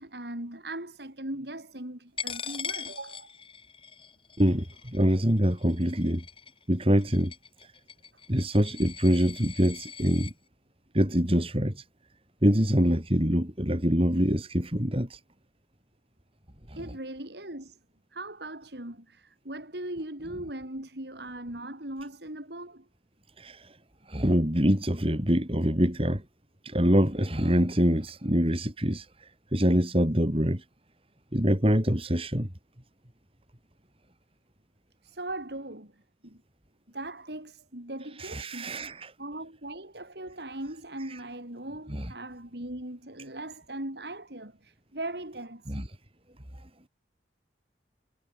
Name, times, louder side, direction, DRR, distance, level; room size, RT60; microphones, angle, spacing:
voice 1, 0.0-3.3 4.5-4.6 16.8-17.8 18.1-22.8 35.0-35.9 36.2-36.4 36.9-38.8 39.2-45.8, right 1 dB, 70° right, 5.0 m, -39 dB
Coin (dropping), 2.2-10.3, left 7 dB, 30° left, 7.5 m, -41 dB
voice 2, 4.9-6.2 6.7-7.3 7.6-7.7 8.3-10.3 10.9-11.8 12.4-15.2 16.7-16.8 23.4-23.8 24.1-26.2 26.6-30.6 31.3-32.5 38.2-39.1 41.1-41.2 41.9-42.1 45.7-45.8, equal, 30° right, 4.6 m, -25 dB
head